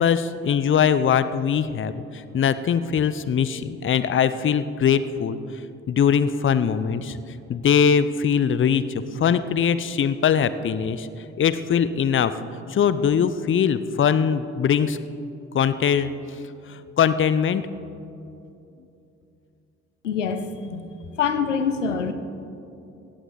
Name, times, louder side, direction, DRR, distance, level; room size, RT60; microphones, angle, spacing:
voice 1, 0.0-5.4 5.9-7.2 7.5-11.1 11.4-12.3 12.7-15.0 15.5-16.1 16.7-17.7, left 7 dB, 35° left, 14 dB, 0.7 m, -21 dB
voice 2, 20.0-20.9 21.1-22.1, left 6 dB, 90° left, 9 dB, 0.7 m, -25 dB
17.5 x 14.0 x 4.0 m, 2.7 s
figure-of-eight pair, 45°, 36 cm